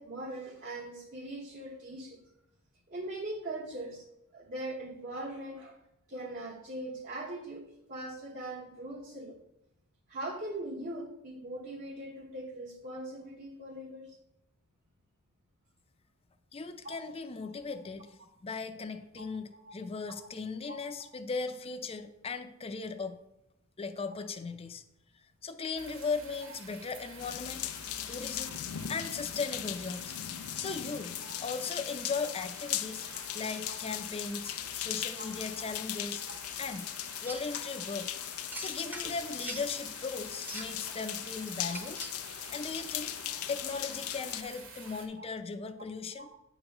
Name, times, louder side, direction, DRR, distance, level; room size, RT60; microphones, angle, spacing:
voice 1, 0.0-2.2 2.9-4.0 4.3-5.8 6.1-9.4 10.1-14.2 16.8-17.0 19.2-19.3 19.5-19.7 20.6-20.8 35.2-35.3 35.5-35.6 36.3-36.4 41.7-41.8 45.1-45.2 46.2-46.3, right 1 dB, 40° right, -4 dB, 1.1 m, -41 dB
voice 2, 16.5-23.2 23.8-24.8 25.1-27.7 28.1-28.6 28.9-30.2 30.6-31.1 31.4-33.1 33.3-36.2 36.6-36.9 37.2-38.1 38.6-42.0 42.5-43.2 43.5-46.3, left 4 dB, 25° left, 7 dB, 0.5 m, -38 dB
sound 1, 25.8-45.1, right 3 dB, 65° right, 1.5 m, -50 dB
sound 2, 27.2-44.4, left 12 dB, 80° left, 0.4 m, -39 dB
sound 3, 37.2-37.5 38.5-39.7 40.3-40.8 41.7-42.2, right 1 dB, 10° right, 0.8 m, -43 dB
8.8 x 3.0 x 6.4 m, 0.83 s
head